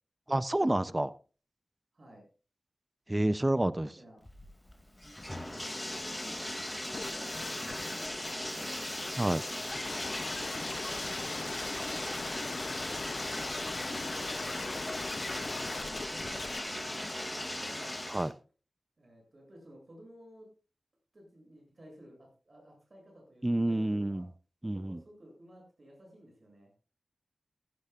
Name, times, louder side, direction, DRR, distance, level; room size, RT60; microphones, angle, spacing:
voice 1, 0.3-1.1 3.1-3.9 9.2-9.4 18.1-18.3 23.4-24.3 24.6-25.0, right 1 dB, 15° right, 15 dB, 0.5 m, -29 dB
voice 2, 1.9-2.2 3.4-4.3 5.3-6.3 7.0-8.9 9.9-14.0 14.5-16.2 16.5-17.9 19.0-20.5 21.1-24.3 24.7-26.7, equal, 45° right, 1 dB, 7.5 m, -54 dB
Bathtub (filling or washing), 4.3-18.3, left 1 dB, 10° left, 2.3 m, -38 dB
sound 1, 6.9-16.6, left 4 dB, 55° left, 0.6 m, -41 dB
15.5 x 15.5 x 2.4 m, 0.35 s
wide cardioid pair, 95°, 0 cm